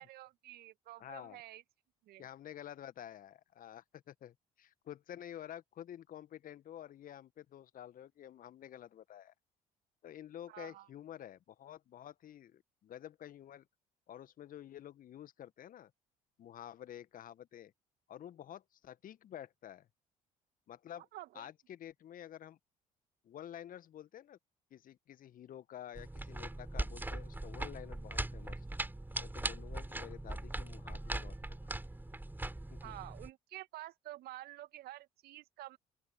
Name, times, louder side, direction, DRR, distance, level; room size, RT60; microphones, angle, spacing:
voice 1, 0.0-1.6 2.1-2.2 10.5-10.9 21.1-21.5 32.8-35.8, right 15 dB, 60° right, 2.3 m, -49 dB
voice 2, 1.0-1.4 2.2-9.3 10.0-13.7 14.1-15.9 16.4-17.7 18.1-19.9 20.7-21.1 21.3-22.6 23.2-24.4 24.7-28.7 29.2-31.8 32.7-32.9, left 11 dB, 50° left, 1.7 m, -50 dB
sound 1, 25.9-33.3, right 2 dB, 10° right, 4.4 m, -40 dB
open air
figure-of-eight pair, 50°, 18 cm